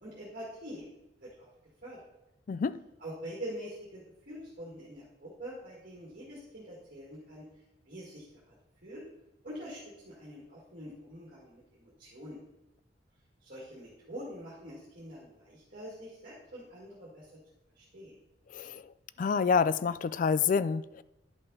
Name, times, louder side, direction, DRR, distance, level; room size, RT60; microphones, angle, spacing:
voice 1, 0.0-0.8 1.2-1.5 1.8-2.1 3.0-7.5 7.9-8.5 8.8-9.0 9.4-12.4 13.4-17.4 17.8-18.1, equal, 50° right, 2.0 m, -45 dB
voice 2, 2.5-2.8 18.5-18.9 19.2-21.0, left 5 dB, 45° left, 0.3 m, -28 dB
10.5 x 5.5 x 4.0 m
head